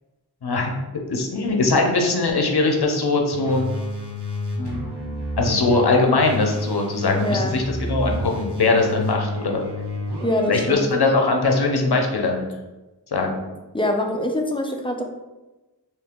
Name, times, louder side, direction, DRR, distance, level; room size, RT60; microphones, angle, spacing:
voice 1, 0.4-0.8 1.1-3.7 4.6-4.9 5.4-9.6 10.5-12.5 13.1-13.4, left 3 dB, 75° left, 2 dB, 0.7 m, -21 dB
sound 1, 3.3-10.7, left 1 dB, 80° right, 0.9 m, -30 dB
voice 2, 7.1-7.6 10.2-10.9 13.7-15.0, left 1 dB, 15° left, 2 dB, 0.5 m, -24 dB
3.0 x 2.8 x 3.5 m, 1.1 s
wide cardioid pair, 45°, 39 cm